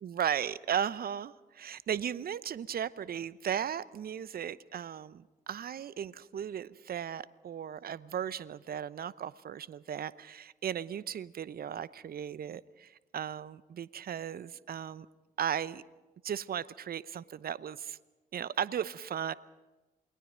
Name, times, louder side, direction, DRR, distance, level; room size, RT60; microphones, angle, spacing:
voice 1, 0.0-15.1 15.4-15.8 16.2-18.0 18.3-19.3, right 9 dB, 50° right, 18 dB, 0.8 m, -36 dB
28.5 x 21.5 x 5.1 m, 1.1 s
hypercardioid pair, 40°, 19 cm